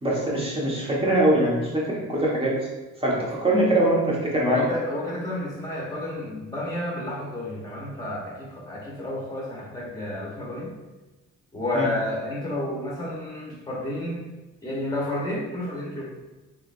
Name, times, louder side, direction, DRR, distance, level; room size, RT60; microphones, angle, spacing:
voice 1, 0.0-2.5 3.0-4.6 11.7-11.9, right 1 dB, 20° right, -5 dB, 1.3 m, -22 dB
voice 2, 4.5-10.7 11.5-14.3 14.6-16.0, left 1 dB, 10° left, -5 dB, 1.1 m, -31 dB
3.7 x 3.3 x 2.5 m, 1.1 s
cardioid pair, 90°, 30 cm